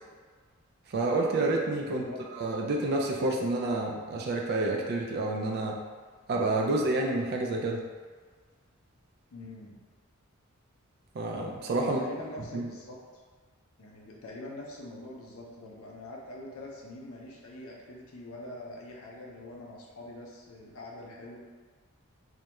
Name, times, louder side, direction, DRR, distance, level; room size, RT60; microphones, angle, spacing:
voice 1, 0.9-2.0 2.4-5.8 6.3-7.8 11.1-12.0 12.5-12.7, right 2 dB, 45° right, 0 dB, 0.3 m, -29 dB
voice 2, 1.9-2.3 9.3-9.8 11.8-13.2 13.8-21.4, left 1 dB, 70° left, -1 dB, 0.5 m, -44 dB
2.3 x 2.1 x 2.8 m, 1.5 s
head